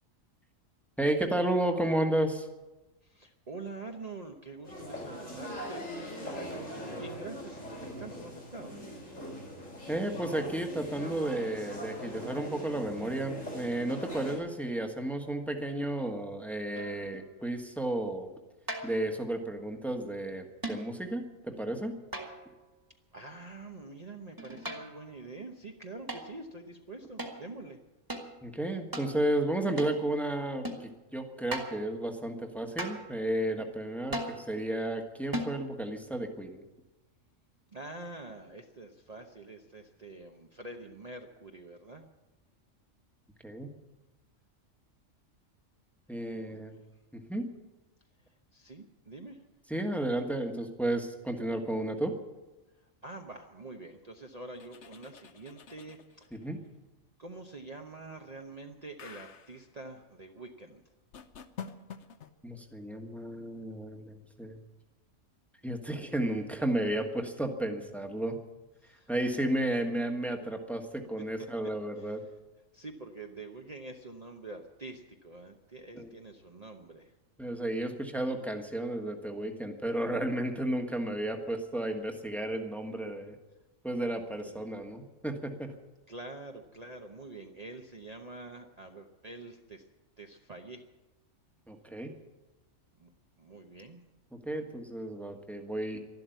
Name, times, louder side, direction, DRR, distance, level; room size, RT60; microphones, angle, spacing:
voice 1, 1.0-2.5 9.9-18.3 18.8-21.9 28.4-36.6 43.4-43.7 46.1-46.7 47.1-47.5 49.7-52.1 56.3-56.6 62.4-64.6 65.6-68.4 69.1-72.2 75.9-76.1 77.4-83.3 83.8-85.7 91.7-92.1 94.3-96.0, right 1 dB, ahead, 4 dB, 1.4 m, -33 dB
voice 2, 3.0-8.8 23.1-27.8 37.7-42.1 46.3-46.8 48.2-49.4 52.8-56.5 57.2-60.8 68.8-69.1 71.4-71.5 72.0-72.3 72.7-77.2 84.4-84.7 86.1-89.9 90.2-90.8 93.0-93.1 93.4-94.0, right 2 dB, 35° right, 3 dB, 1.0 m, -46 dB
sound 1, 4.6-14.4, equal, 90° left, 5.1 m, -41 dB
sound 2, 16.7-17.1 18.7-19.1 20.6-21.0 22.1-22.6 24.4-25.1 26.1-26.3 27.2-27.4 28.1-28.3 28.9-29.1 29.8-30.0 30.6-30.9 31.5-31.8 32.8-33.1 34.1-34.4 35.3-35.6, right 1 dB, 15° right, 1.8 m, -37 dB
sound 3, 54.5-56.4 59.0-59.6 61.1-62.3, left 7 dB, 65° left, 1.2 m, -47 dB
13.0 x 12.0 x 9.2 m, 1.1 s
omnidirectional pair, 1.3 m